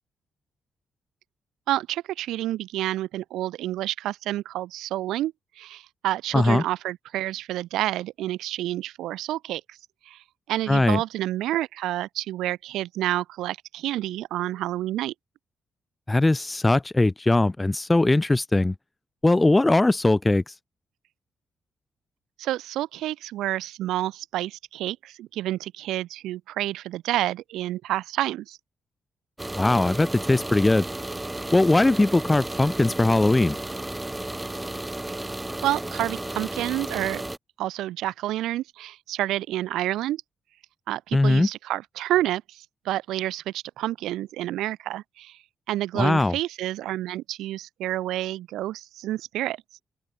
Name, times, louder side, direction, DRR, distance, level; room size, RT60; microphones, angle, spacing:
voice 1, 1.7-9.8 10.1-10.2 10.5-15.1 22.4-28.6 35.6-37.2 37.6-40.2 40.9-45.4 45.7-49.6, right 14 dB, 85° right, 2.6 m, -29 dB
voice 2, 6.3-6.6 10.7-11.0 16.1-18.7 19.2-20.4 29.5-30.8 31.5-33.6 41.1-41.5 45.9-46.3, left 2 dB, 20° left, 1.2 m, -20 dB
sound 1, 29.4-37.4, right 1 dB, 15° right, 3.4 m, -33 dB
open air
supercardioid pair, 50°, 0 cm